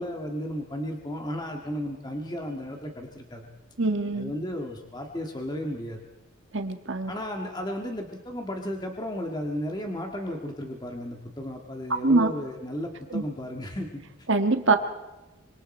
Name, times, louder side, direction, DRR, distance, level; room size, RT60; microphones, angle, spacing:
voice 1, 0.0-3.5 4.1-6.0 7.1-14.3, equal, 20° left, 2 dB, 1.8 m, -34 dB
voice 2, 3.8-4.3 6.5-7.1 12.0-12.3 13.1-13.2 14.3-14.8, right 3 dB, 60° right, 6 dB, 1.5 m, -23 dB
25.5 x 25.5 x 4.4 m, 1.1 s
head